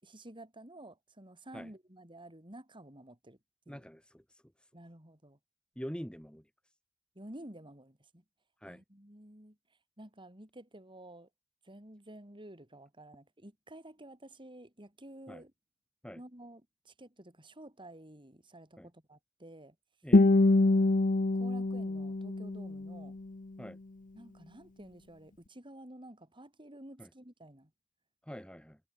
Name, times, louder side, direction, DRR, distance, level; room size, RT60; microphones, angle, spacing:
voice 1, 0.0-3.4 3.7-3.8 4.7-5.4 7.1-8.2 8.7-9.6 10.0-11.3 11.6-15.5 16.1-19.7 20.6-21.0 21.3-23.2 24.1-27.7, right 1 dB, 25° right, 5.1 m, -51 dB
voice 2, 3.7-4.2 5.7-6.4 8.6-8.8 15.3-15.4 16.0-16.2 18.8-18.9 20.0-20.3 23.6-23.8 27.0-27.1 28.3-28.8, equal, 5° left, 3.2 m, -44 dB
Guitar, 20.1-23.1, left 2 dB, 40° left, 0.7 m, -25 dB
head